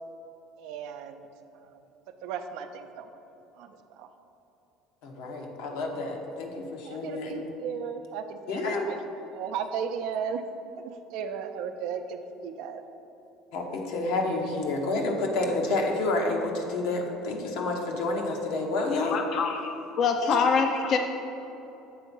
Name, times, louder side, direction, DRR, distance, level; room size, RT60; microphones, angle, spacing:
voice 1, 0.6-1.3 2.2-3.1 3.6-4.1 6.8-9.0 9.3-10.4 10.8-12.8, right 7 dB, 75° right, 7 dB, 0.5 m, -35 dB
voice 2, 5.0-7.4 8.5-8.9 13.5-19.7 20.2-20.8, left 2 dB, 80° left, 1 dB, 1.0 m, -29 dB
voice 3, 18.9-19.5 20.0-21.0, left 5 dB, 50° left, 5 dB, 0.4 m, -24 dB
7.7 x 3.6 x 5.5 m, 3.0 s
supercardioid pair, 100°, 0 cm